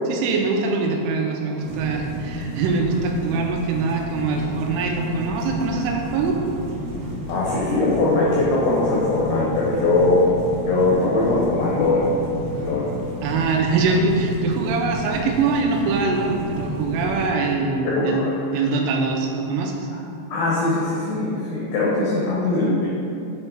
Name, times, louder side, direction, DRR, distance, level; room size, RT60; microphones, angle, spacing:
voice 1, 0.1-6.4 13.2-18.3 18.5-19.9, right 4 dB, 90° right, 2 dB, 3.1 m, -23 dB
sound 1, 1.6-17.3, equal, 70° right, 2.1 m, -32 dB
voice 2, 7.3-10.3 10.7-12.1 12.5-12.9 17.4-17.5 17.8-18.6 19.9-20.0 20.3-22.9, left 2 dB, 90° left, -5 dB, 2.1 m, -21 dB
7.5 x 3.1 x 4.8 m, 2.6 s
omnidirectional pair, 5.5 m